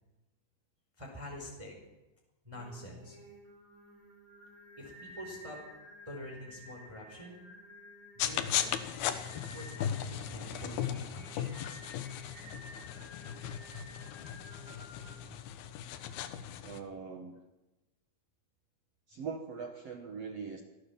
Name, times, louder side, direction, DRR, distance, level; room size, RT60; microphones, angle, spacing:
voice 1, 1.0-1.7 2.4-3.2 4.8-5.6 6.1-7.4 8.1-8.7 9.5-11.6 15.3-15.4, left 1 dB, 5° right, 0 dB, 4.1 m, -46 dB
Singing, 2.5-15.1, equal, 80° right, 8.2 m, -53 dB
sound 1, 8.2-16.8, left 10 dB, 75° left, 3.1 m, -37 dB
voice 2, 16.6-17.4 19.1-20.6, right 5 dB, 65° right, 5 dB, 1.6 m, -41 dB
25.5 x 16.5 x 7.2 m, 1.1 s
omnidirectional pair, 4.8 m